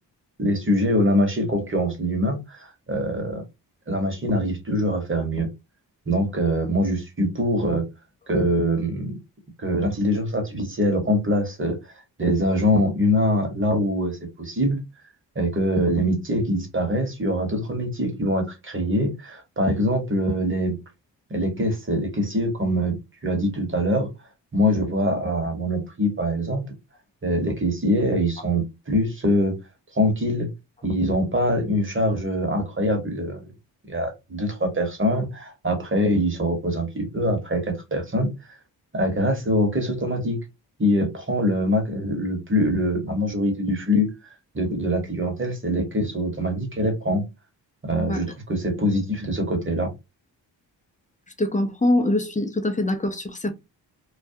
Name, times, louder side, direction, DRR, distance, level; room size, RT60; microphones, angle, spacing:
voice 1, 0.4-3.4 3.9-5.5 6.1-7.8 8.3-9.2 9.6-11.8 12.2-14.8 15.3-20.7 21.3-22.9 23.2-24.1 24.5-26.6 27.2-29.6 29.9-30.5 30.8-33.4 33.9-38.3 38.9-40.4 40.8-44.1 44.5-47.3 47.8-49.9, equal, 25° right, 1.1 m, -23 dB
voice 2, 51.4-53.5, left 1 dB, 15° left, 0.6 m, -23 dB
2.3 x 2.2 x 2.6 m
cardioid pair, 50°, 45 cm